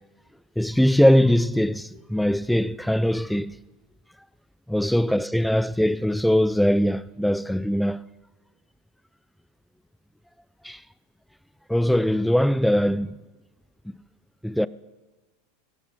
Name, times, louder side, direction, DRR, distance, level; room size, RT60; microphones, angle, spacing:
voice 1, 0.6-3.5 4.7-8.0 10.6-10.8 11.7-13.1 14.4-14.7, equal, ahead, 0.4 m, -21 dB
26.0 x 16.0 x 2.8 m
figure-of-eight pair, 85°, 0 cm